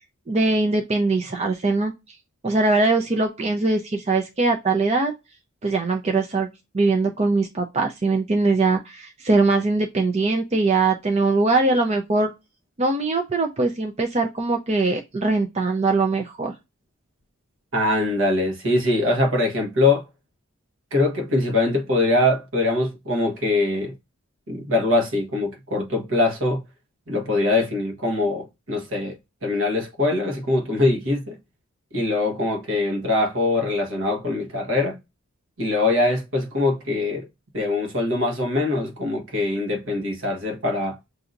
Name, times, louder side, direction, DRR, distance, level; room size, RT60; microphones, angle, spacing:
voice 1, 0.3-1.9 2.4-5.1 5.6-6.5 6.7-12.3 12.8-16.5, right 3 dB, 30° right, 0.5 m, -21 dB
voice 2, 17.7-20.0 20.9-23.9 24.5-26.6 27.1-31.4 31.9-35.0 35.6-37.3 37.5-41.0, left 2 dB, 65° right, 1.3 m, -23 dB
6.8 x 2.7 x 2.5 m
head